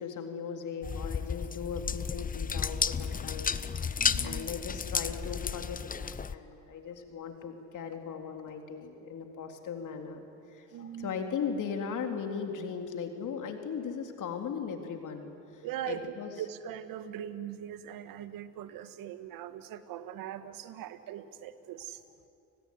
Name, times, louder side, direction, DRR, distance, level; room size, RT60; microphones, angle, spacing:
voice 1, 0.0-16.3, left 6 dB, 55° left, 4 dB, 3.6 m, -38 dB
sound 1, 0.8-6.3, left 6 dB, 25° left, 0.8 m, -33 dB
voice 2, 4.0-4.4 10.7-11.2 15.6-22.0, right 10 dB, 65° right, 11 dB, 1.7 m, -41 dB
29.5 x 20.0 x 9.7 m, 2.6 s
supercardioid pair, 75°, 36 cm